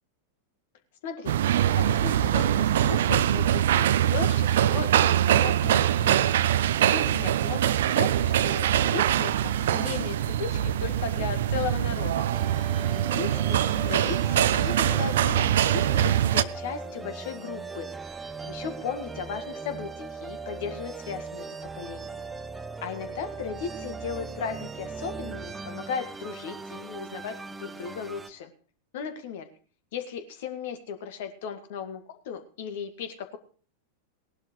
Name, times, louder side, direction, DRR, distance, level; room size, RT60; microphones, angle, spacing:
voice 1, 1.0-6.4 6.9-12.3 12.8-13.6 13.8-17.9 18.4-21.5 21.7-22.2 22.8-28.5 28.9-29.5 29.9-33.4, left 7 dB, 55° left, 7 dB, 1.9 m, -36 dB
sound 1, 1.3-16.4, right 11 dB, 60° right, 0.5 m, -23 dB
sound 2, 12.3-28.3, right 4 dB, 10° right, 0.8 m, -39 dB
19.5 x 11.5 x 3.2 m, 0.40 s
figure-of-eight pair, 90°, 0 cm